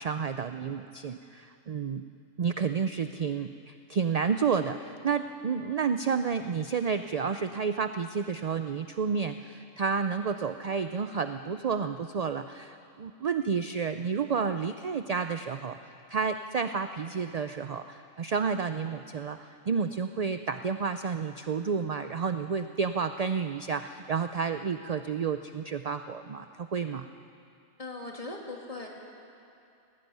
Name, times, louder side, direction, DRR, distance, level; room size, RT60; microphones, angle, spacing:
voice 1, 0.0-2.0 2.4-15.8 16.1-19.4 19.7-27.1, right 6 dB, 50° right, 9 dB, 0.4 m, -30 dB
voice 2, 27.8-28.9, left 2 dB, 30° left, -1 dB, 2.7 m, -39 dB
17.5 x 17.0 x 9.3 m, 2.6 s
omnidirectional pair, 1.3 m